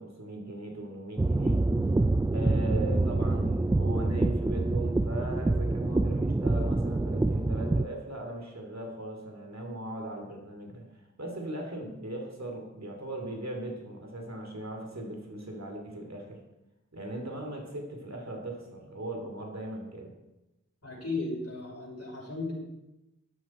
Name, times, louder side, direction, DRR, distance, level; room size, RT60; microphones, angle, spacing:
voice 1, 0.0-1.7 2.3-10.8 11.2-16.4 16.9-20.1, right 1 dB, 60° right, 1 dB, 3.0 m, -39 dB
sound 1, 1.2-7.8, right 2 dB, 15° right, 0.3 m, -26 dB
voice 2, 20.8-22.5, left 3 dB, 55° left, -4 dB, 5.9 m, -36 dB
13.0 x 12.5 x 4.5 m, 0.98 s
wide cardioid pair, 45°, 30 cm